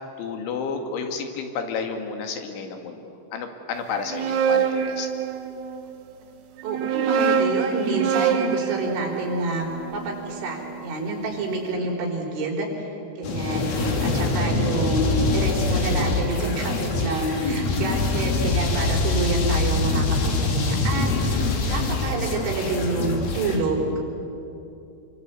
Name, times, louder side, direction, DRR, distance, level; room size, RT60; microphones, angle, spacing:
voice 1, 0.2-3.0 3.3-5.1 21.1-21.3, left 5 dB, 80° left, 5 dB, 4.5 m, -31 dB
sound 1, 3.9-5.8 6.6-10.7, right 7 dB, 65° right, 2.7 m, -25 dB
voice 2, 6.6-12.9 13.2-23.9, right 2 dB, 90° right, 0 dB, 6.7 m, -28 dB
sound 2, 13.2-23.6, left 3 dB, 55° left, 4.1 m, -24 dB
28.0 x 24.0 x 8.3 m, 2.8 s
omnidirectional pair, 5.4 m